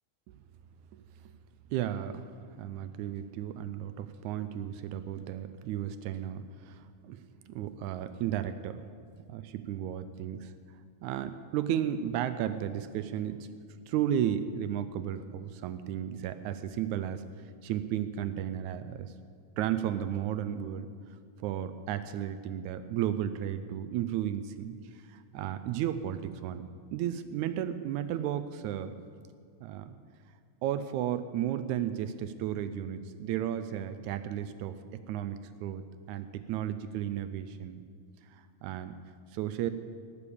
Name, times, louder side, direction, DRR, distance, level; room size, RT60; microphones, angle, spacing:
voice 1, 1.7-2.3 2.6-7.2 7.5-8.8 9.3-10.5 11.0-13.5 13.9-17.2 17.6-19.1 19.6-20.9 21.4-26.6 26.9-29.0 29.6-30.0 30.6-34.8 35.1-37.8 38.3-39.0 39.3-39.7, right 10 dB, 80° right, 11 dB, 1.7 m, -34 dB
18.0 x 6.9 x 8.5 m, 2.2 s
omnidirectional pair, 3.9 m